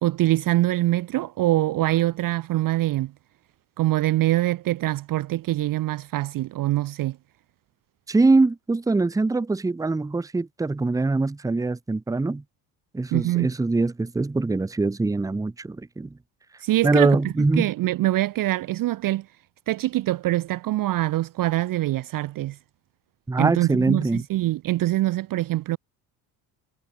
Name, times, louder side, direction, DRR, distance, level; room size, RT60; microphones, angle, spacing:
voice 1, 0.0-3.1 3.8-7.2 13.1-13.5 16.6-19.3 19.7-22.6 23.4-25.8, right 16 dB, 45° right, 0.5 m, -24 dB
voice 2, 8.1-12.4 12.9-16.2 16.8-17.7 23.3-24.2, right 3 dB, 5° right, 0.6 m, -23 dB
supercardioid pair, 70°, 47 cm